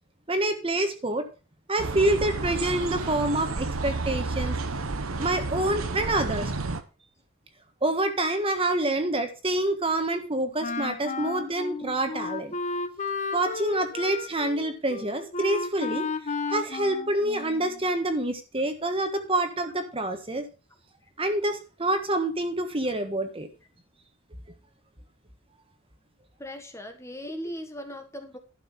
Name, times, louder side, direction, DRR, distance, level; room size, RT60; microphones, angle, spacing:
voice 1, 0.3-1.2 1.7-4.6 5.2-6.5 7.8-12.5 13.3-16.1 16.5-20.4 21.2-23.5, right 1 dB, 25° right, 7 dB, 1.5 m, -27 dB
sound 1, 1.8-6.8, right 3 dB, 85° right, 1.1 m, -31 dB
Wind instrument woodwind instrument, 10.6-17.8, left 4 dB, 35° left, 1.0 m, -33 dB
voice 2, 26.4-28.4, equal, 15° left, 5 dB, 1.5 m, -38 dB
12.0 x 6.0 x 5.9 m, 0.33 s
head